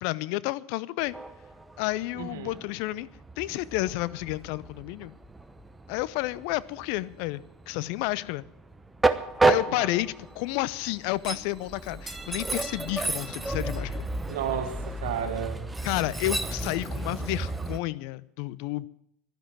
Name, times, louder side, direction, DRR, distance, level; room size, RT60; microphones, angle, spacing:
voice 1, 0.0-1.1 1.8-3.1 3.4-5.1 5.9-8.5 9.4-14.1 15.8-18.9, left 18 dB, 60° left, 0.5 m, -31 dB
Train, 1.0-17.8, right 3 dB, 10° right, 0.9 m, -32 dB
voice 2, 2.1-2.6 9.7-9.8 14.3-15.7, right 9 dB, 70° right, 2.0 m, -33 dB
12.0 x 11.0 x 9.0 m
hypercardioid pair, 85°, 0 cm